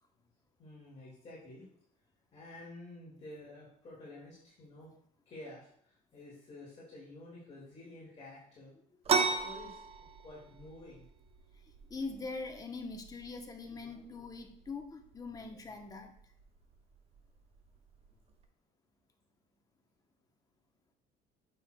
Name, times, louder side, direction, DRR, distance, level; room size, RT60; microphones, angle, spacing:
voice 1, 0.6-1.7 2.3-4.9 5.3-8.7 9.2-9.8 10.2-11.1, left 1 dB, 35° left, -6 dB, 2.0 m, -50 dB
sound 1, 9.0-18.4, right 5 dB, 35° right, 0.7 m, -38 dB
voice 2, 11.9-16.1, left 3 dB, 20° left, 4 dB, 0.8 m, -42 dB
8.9 x 6.1 x 2.2 m, 0.64 s
cardioid pair, 140°, 17 cm